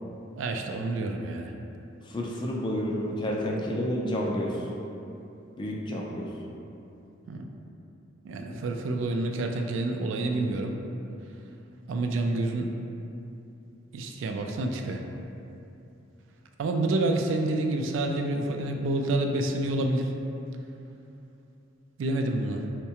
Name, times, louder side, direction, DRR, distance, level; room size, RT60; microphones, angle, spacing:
voice 1, 0.3-1.5 7.3-7.5 8.2-10.8 11.9-12.7 13.9-15.0 16.6-20.1 22.0-22.6, right 2 dB, 75° right, 3 dB, 0.3 m, -28 dB
voice 2, 2.1-4.6 5.6-6.3 8.5-8.6, equal, 25° left, -2 dB, 0.3 m, -30 dB
4.6 x 2.2 x 2.8 m, 2.8 s
head